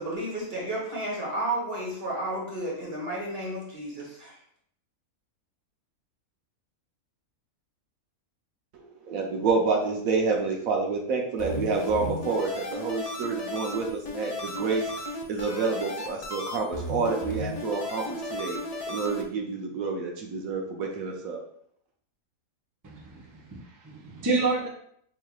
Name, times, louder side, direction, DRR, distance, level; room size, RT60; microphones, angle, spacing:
voice 1, 0.0-4.3, right 1 dB, 45° right, -3 dB, 1.4 m, -32 dB
voice 2, 8.7-14.9 15.3-18.6 18.9-21.4, right 4 dB, 75° right, 1 dB, 1.1 m, -28 dB
sound 1, 11.4-19.2, left 1 dB, 65° left, 0.3 m, -35 dB
voice 3, 22.8-24.7, right 3 dB, 25° right, -2 dB, 0.4 m, -29 dB
4.7 x 3.2 x 2.3 m, 0.66 s
omnidirectional pair, 1.5 m